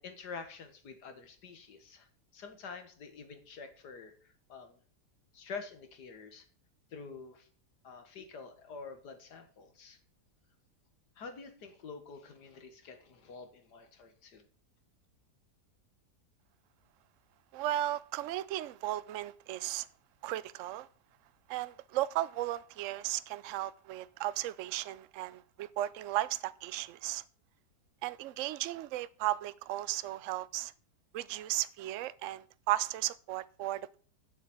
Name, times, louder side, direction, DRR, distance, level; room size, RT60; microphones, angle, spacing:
voice 1, 0.0-4.8 5.3-6.5 6.9-7.5 7.8-10.0 11.2-14.4, left 5 dB, 80° left, 2.1 m, -47 dB
voice 2, 17.5-19.9 20.2-20.9 21.5-27.2 28.0-30.7 31.1-34.0, right 14 dB, 65° right, 0.8 m, -35 dB
7.7 x 6.6 x 8.0 m
omnidirectional pair, 1.7 m